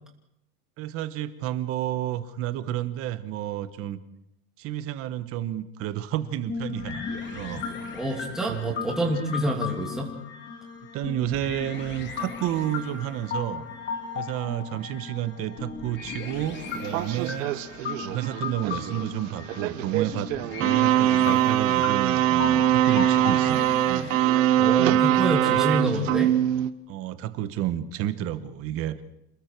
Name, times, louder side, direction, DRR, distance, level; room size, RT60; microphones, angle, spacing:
voice 1, 0.8-4.0 4.6-7.0 7.3-7.6 8.1-8.2 8.5-9.2 10.9-13.6 14.1-17.5 18.0-24.2 26.9-29.0, right 12 dB, 30° right, 12 dB, 1.2 m, -31 dB
sound 1, 6.5-24.7, left 5 dB, 25° left, 2.9 m, -36 dB
voice 2, 7.9-10.1 24.5-26.3, right 1 dB, ahead, -2 dB, 2.7 m, -27 dB
sound 2, 16.6-26.7, right 12 dB, 60° right, 1.3 m, -22 dB
28.5 x 20.0 x 4.7 m, 0.81 s
supercardioid pair, 155°, 44 cm